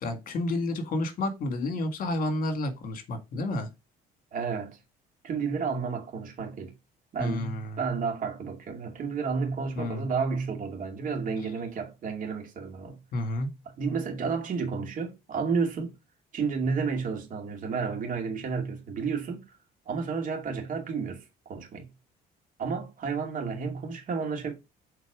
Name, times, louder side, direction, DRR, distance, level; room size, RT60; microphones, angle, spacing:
voice 1, 0.0-3.7 7.2-7.8 9.8-10.0 13.1-13.5, left 2 dB, 55° left, 1.9 m, -30 dB
voice 2, 4.3-4.8 5.2-6.7 7.1-13.0 13.6-15.9 16.3-19.4 19.9-21.9 22.6-24.5, right 5 dB, 50° right, 2.4 m, -31 dB
7.3 x 3.9 x 4.9 m
cardioid pair, 110°, 17 cm